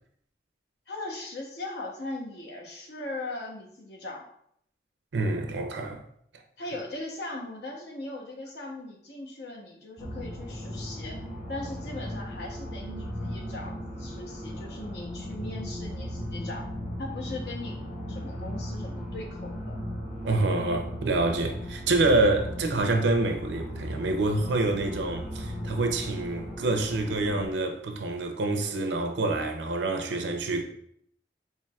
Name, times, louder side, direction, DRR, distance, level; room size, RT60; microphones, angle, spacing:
voice 1, 0.9-4.2 6.6-11.2 11.5-16.6 17.0-17.8 18.1-19.8, left 2 dB, 70° left, 0.8 m, -39 dB
voice 2, 5.1-6.0 20.2-30.6, right 2 dB, 85° right, 0.5 m, -27 dB
sound 1, 10.0-27.5, equal, 45° left, 1.2 m, -37 dB
4.5 x 3.0 x 2.3 m
head